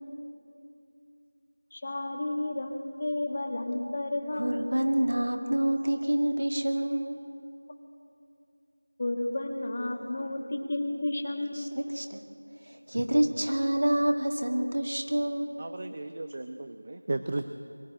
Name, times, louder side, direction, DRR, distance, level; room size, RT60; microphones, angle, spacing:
voice 1, 1.7-4.6 9.0-11.7, left 2 dB, 25° left, 3 dB, 1.4 m, -32 dB
voice 2, 4.3-7.2 11.5-12.2 12.6-15.5, right 1 dB, 60° right, 4 dB, 2.0 m, -27 dB
voice 3, 15.6-17.5, right 2 dB, 30° right, 9 dB, 0.5 m, -35 dB
22.5 x 12.5 x 9.5 m, 2.6 s
figure-of-eight pair, 175°, 0 cm